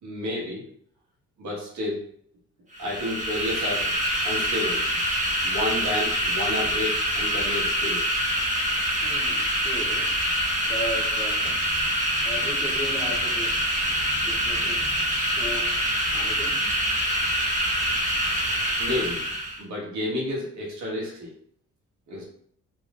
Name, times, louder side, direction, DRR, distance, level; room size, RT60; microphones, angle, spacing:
voice 1, 0.0-0.6 1.4-2.1 2.8-3.9 4.2-4.8 5.4-8.1 18.8-19.2 19.6-21.3 22.1-22.2, left 1 dB, 70° right, -3 dB, 1.5 m, -30 dB
sound 1, 2.7-19.6, equal, 25° right, 1.1 m, -25 dB
voice 2, 9.0-10.2 10.7-11.6 12.2-13.7 14.2-16.7, left 1 dB, 10° left, -1 dB, 0.8 m, -37 dB
4.1 x 3.1 x 2.4 m, 0.64 s
cardioid pair, 90°, 30 cm